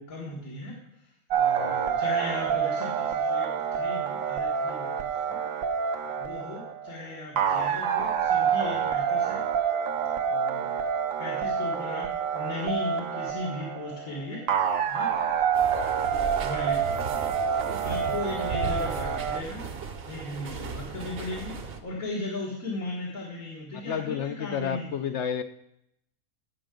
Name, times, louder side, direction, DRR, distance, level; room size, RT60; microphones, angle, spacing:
voice 1, 0.0-5.4 6.2-9.4 10.3-10.9 11.2-15.1 16.4-17.0 17.3-19.6 20.1-25.1, left 2 dB, 85° left, -5 dB, 2.2 m, -37 dB
sound 1, 1.3-19.4, right 7 dB, 75° right, 1.1 m, -27 dB
sound 2, 15.5-21.8, right 4 dB, 50° right, 1.0 m, -36 dB
voice 2, 23.8-25.4, left 8 dB, 65° left, 9 dB, 0.8 m, -30 dB
16.5 x 5.6 x 3.8 m, 0.77 s
omnidirectional pair, 1.5 m